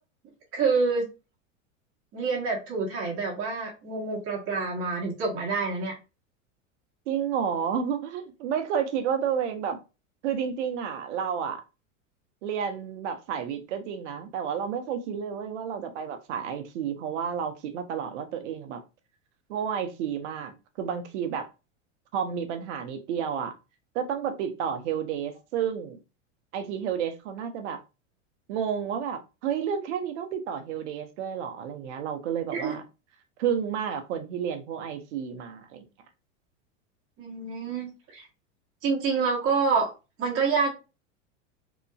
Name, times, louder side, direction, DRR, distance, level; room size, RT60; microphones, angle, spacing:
voice 1, 0.5-1.1 2.1-5.9 32.5-32.7 37.2-38.3 38.8-39.9 40.2-40.7, right 4 dB, 35° right, 1.2 m, -27 dB
voice 2, 7.1-9.8 10.2-11.6 12.4-18.8 19.5-21.5 22.1-23.5 23.9-26.0 26.5-27.8 28.5-32.8 33.4-35.8, right 8 dB, 65° right, 0.7 m, -31 dB
2.9 x 2.5 x 2.2 m
hypercardioid pair, 110°, 38 cm